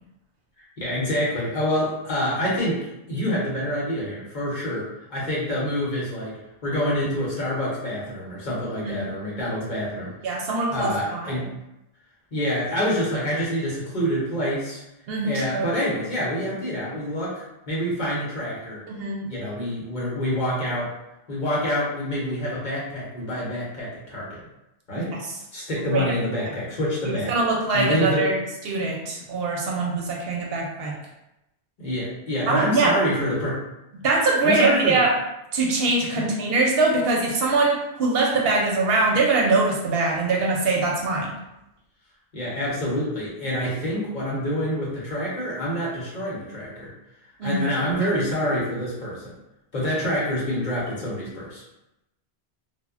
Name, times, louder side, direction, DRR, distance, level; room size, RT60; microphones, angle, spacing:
voice 1, 0.8-6.3 6.6-10.1 10.7-11.6 12.3-14.8 15.2-18.8 19.2-20.9 21.3-24.4 24.9-25.1 25.5-27.4 27.7-28.3 31.8-33.6 34.4-35.0 36.2-36.3 42.3-46.9 47.4-49.2 49.7-51.6, equal, 50° left, -6 dB, 0.9 m, -27 dB
voice 2, 10.2-11.5 15.1-15.7 18.9-19.2 24.9-25.2 25.8-26.1 27.0-28.4 28.6-30.9 32.5-32.9 34.0-35.1 35.5-41.3 47.4-47.6, right 3 dB, 70° right, -2 dB, 0.8 m, -23 dB
2.1 x 2.0 x 3.5 m, 0.90 s
omnidirectional pair, 1.1 m